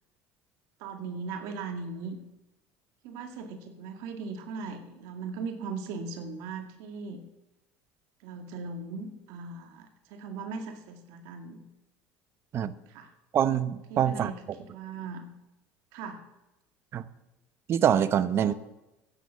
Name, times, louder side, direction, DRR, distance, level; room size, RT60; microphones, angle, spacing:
voice 1, 0.8-2.2 3.0-7.2 8.2-11.6 12.9-13.1 13.9-14.3 14.7-15.3 15.9-16.2 18.4-18.5, right 4 dB, 75° right, 5 dB, 2.2 m, -38 dB
voice 2, 13.3-14.3 16.9-17.0 17.7-18.5, right 9 dB, 45° right, 14 dB, 0.9 m, -25 dB
13.0 x 9.4 x 7.3 m, 0.96 s
supercardioid pair, 105°, 6 cm